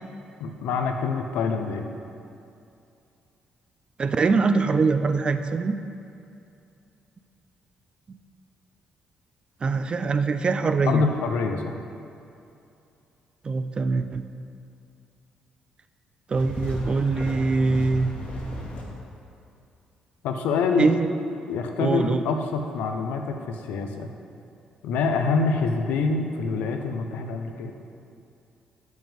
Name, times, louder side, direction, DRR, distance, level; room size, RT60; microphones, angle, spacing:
voice 1, 0.4-1.9 10.8-11.7 20.2-20.9 21.5-24.1 24.8-27.7, left 4 dB, 85° left, 5 dB, 0.5 m, -26 dB
voice 2, 4.0-5.8 9.6-11.1 13.4-14.3 16.3-18.1 20.8-21.1 21.8-22.2, right 4 dB, 40° right, 9 dB, 0.4 m, -23 dB
sound 1, 16.3-18.8, left 1 dB, 60° left, 1.3 m, -34 dB
7.0 x 6.1 x 3.5 m, 2.6 s
cardioid pair, 75°, 3 cm